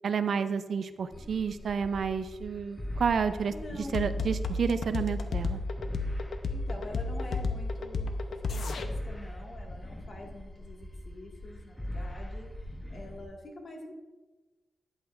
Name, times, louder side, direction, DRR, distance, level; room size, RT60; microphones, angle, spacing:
voice 1, 0.0-5.6, right 6 dB, 70° right, 11 dB, 0.4 m, -30 dB
sound 1, 1.1-13.3, left 1 dB, 10° left, 0.8 m, -41 dB
voice 2, 3.5-4.0 6.5-8.1 8.5-12.5 12.9-13.9, left 1 dB, 55° left, -1 dB, 1.7 m, -45 dB
sound 2, 3.9-8.9, left 3 dB, 75° left, 0.7 m, -31 dB
11.5 x 8.0 x 2.5 m, 1.2 s
wide cardioid pair, 105°, 0 cm